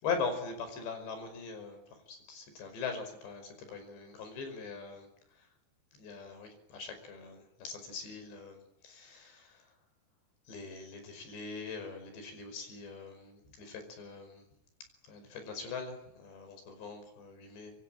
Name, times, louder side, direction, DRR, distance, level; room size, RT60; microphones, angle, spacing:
voice 1, 0.0-5.5 5.9-9.7 10.5-14.5 15.0-17.7, left 5 dB, 80° left, 8 dB, 7.4 m, -41 dB
26.0 x 23.0 x 8.9 m, 0.79 s
omnidirectional pair, 5.0 m